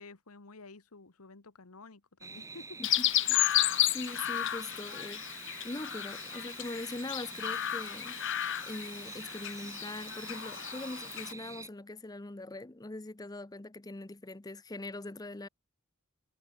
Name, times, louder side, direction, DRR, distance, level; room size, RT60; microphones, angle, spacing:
voice 1, 0.0-2.8, left 3 dB, 90° left, 1.5 m, -51 dB
sound 1, 2.2-11.7, right 4 dB, 15° right, 3.6 m, -47 dB
Chirp tweet, 2.8-11.3, left 13 dB, 55° left, 0.6 m, -33 dB
voice 2, 2.8-3.4 3.9-5.2 5.6-8.2 8.6-15.5, left 2 dB, 15° left, 0.6 m, -42 dB
head